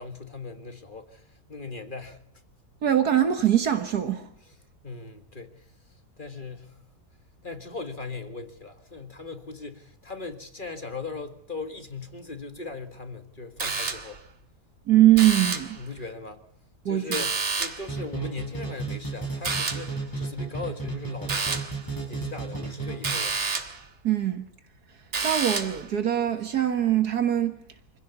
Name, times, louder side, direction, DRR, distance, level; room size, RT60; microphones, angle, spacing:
voice 1, 0.0-2.2 4.5-4.6 4.8-6.8 7.4-14.2 15.8-16.4 16.8-21.7 22.1-23.4, left 4 dB, 30° left, 1.8 m, -39 dB
voice 2, 2.8-4.3 14.9-15.8 16.9-17.2 24.0-24.4 25.2-27.6, right 12 dB, 70° right, 1.9 m, -22 dB
sound 1, 13.6-14.3 15.1-15.8 17.1-17.9 19.4-20.0 21.3-21.8 23.0-23.8 25.1-25.9, right 4 dB, 45° right, 1.9 m, -29 dB
sound 2, 17.9-23.4, right 3 dB, 10° left, 7.1 m, -33 dB
26.0 x 16.0 x 8.2 m
omnidirectional pair, 1.7 m